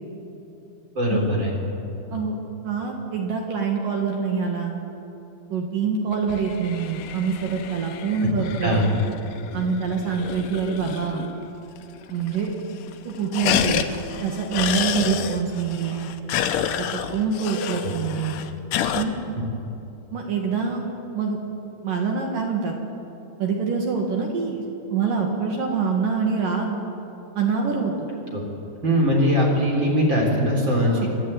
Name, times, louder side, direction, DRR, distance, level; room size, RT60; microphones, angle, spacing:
voice 1, 0.9-1.5 8.6-8.9 17.6-17.9 28.3-28.4 28.8-31.1, equal, 30° right, -1 dB, 4.2 m, -21 dB
voice 2, 2.6-4.7 5.5-8.9 9.5-11.2 12.1-12.5 13.0-13.9 14.2-16.1 16.8-18.3 18.9-19.2 20.1-20.8 21.1-21.4 21.8-22.8 23.4-24.6 24.9-26.8 27.3-28.1 30.8-31.1, right 5 dB, 60° right, 1 dB, 3.0 m, -25 dB
sound 1, 6.1-11.4 11.8-11.9 12.1-12.6 12.9-19.0, left 9 dB, 80° left, 1.8 m, -29 dB
29.5 x 12.0 x 9.0 m, 2.9 s
omnidirectional pair, 4.9 m